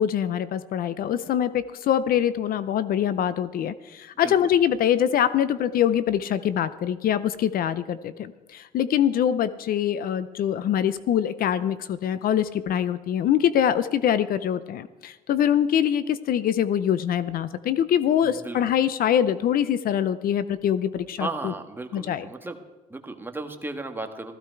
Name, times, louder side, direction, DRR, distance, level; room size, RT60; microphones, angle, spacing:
voice 1, 0.0-21.5 21.9-22.3, left 9 dB, 60° left, 15 dB, 0.7 m, -24 dB
voice 2, 18.2-18.6 21.2-22.6 22.9-24.4, right 2 dB, 10° right, 5 dB, 1.6 m, -35 dB
16.0 x 14.5 x 4.6 m, 1.2 s
cardioid pair, 110°, 17 cm